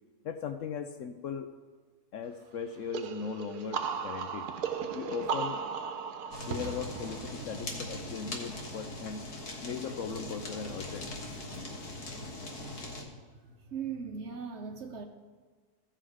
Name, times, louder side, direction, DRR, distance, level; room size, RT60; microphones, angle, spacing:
voice 1, 0.2-1.5 2.1-4.5 4.9-5.6 6.5-9.3 9.6-11.7, left 6 dB, 65° left, 8 dB, 0.8 m, -38 dB
sound 1, 2.9-8.5, right 6 dB, 80° right, 1.3 m, -36 dB
Fire, 6.3-13.0, left 1 dB, 90° left, 2.0 m, -41 dB
voice 2, 13.3-15.0, right 6 dB, 55° right, 5 dB, 0.9 m, -39 dB
15.5 x 5.7 x 4.8 m, 1.5 s
omnidirectional pair, 1.6 m